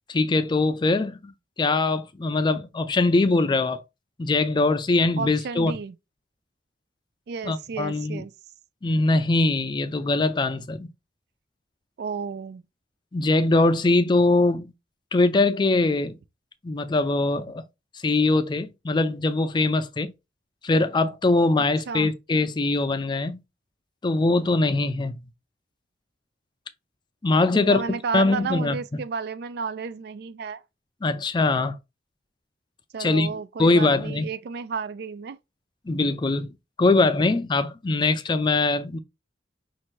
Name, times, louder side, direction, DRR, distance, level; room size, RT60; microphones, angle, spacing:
voice 1, 0.1-1.3 1.6-3.8 4.2-5.7 7.4-8.2 8.8-10.9 13.1-14.7 15.1-16.2 16.6-17.6 17.9-20.1 20.6-23.4 24.0-25.2 27.2-27.8 28.1-29.0 31.0-31.8 33.0-33.3 33.6-34.3 35.9-36.5 36.8-39.0, left 2 dB, 25° left, 0.4 m, -22 dB
voice 2, 5.2-5.9 7.3-8.3 12.0-12.6 21.9-22.1 27.5-30.6 32.9-35.4, right 5 dB, 60° right, 0.3 m, -32 dB
5.5 x 2.5 x 3.1 m
head